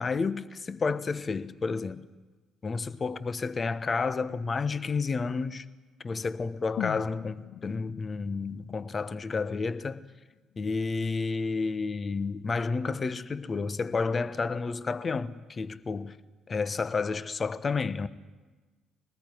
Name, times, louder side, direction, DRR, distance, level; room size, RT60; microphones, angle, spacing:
voice 1, 0.0-2.1 2.6-5.7 6.0-10.0 10.6-16.2 16.5-18.1, left 4 dB, 35° left, 1.2 m, -31 dB
sound 1, 6.8-10.7 11.0-11.1, left 12 dB, 60° left, 0.7 m, -42 dB
23.5 x 19.5 x 9.4 m
figure-of-eight pair, 45°, 0 cm